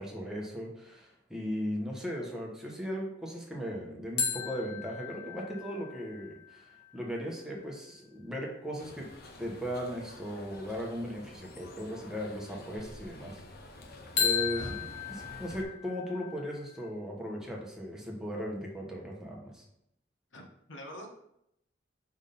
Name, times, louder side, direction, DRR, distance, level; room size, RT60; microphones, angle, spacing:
voice 1, 0.0-9.1 9.4-13.4 13.9-19.6, equal, 5° right, -2 dB, 1.1 m, -37 dB
sound 1, 4.2-7.7 14.2-16.9, left 7 dB, 70° left, 1.3 m, -35 dB
sound 2, 8.8-15.6, left 1 dB, 55° left, 0.8 m, -48 dB
voice 2, 20.3-21.1, left 1 dB, 90° left, 0 dB, 1.3 m, -46 dB
5.4 x 3.6 x 5.4 m, 0.78 s
head